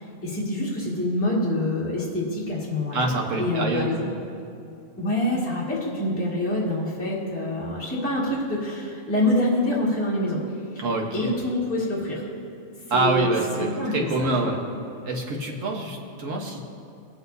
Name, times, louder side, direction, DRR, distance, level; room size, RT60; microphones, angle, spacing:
voice 1, 0.2-4.1 5.0-10.4 11.1-12.2 12.9-13.3 13.6-14.6, left 1 dB, 10° left, -7 dB, 1.9 m, -26 dB
voice 2, 2.9-4.1 10.8-11.3 12.9-14.6 15.0-16.6, right 2 dB, 60° right, 0 dB, 1.6 m, -26 dB
21.5 x 7.9 x 2.7 m, 2.7 s
omnidirectional pair, 1.5 m